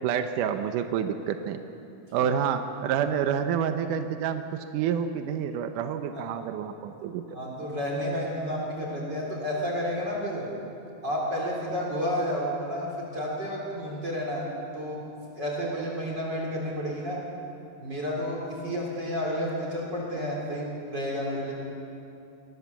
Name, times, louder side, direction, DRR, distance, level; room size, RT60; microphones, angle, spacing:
voice 1, 0.0-1.6 2.1-7.2, right 8 dB, 80° right, 8 dB, 1.8 m, -28 dB
voice 2, 7.3-10.5 11.0-14.4 14.7-15.0 15.4-17.2 17.8-21.5, equal, 25° right, -3 dB, 3.6 m, -31 dB
23.5 x 19.0 x 7.1 m, 2.7 s
omnidirectional pair, 4.7 m